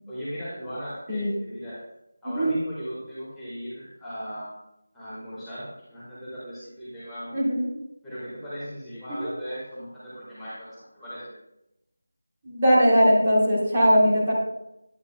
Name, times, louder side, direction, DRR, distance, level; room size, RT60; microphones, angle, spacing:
voice 1, 0.1-1.8 2.2-4.5 4.9-7.4 8.0-11.3, equal, ahead, -16 dB, 1.7 m, -38 dB
voice 2, 7.3-7.7 9.1-9.3 12.4-14.3, equal, 20° right, -6 dB, 1.9 m, -20 dB
9.8 x 7.8 x 2.3 m, 0.85 s
figure-of-eight pair, 175°, 0 cm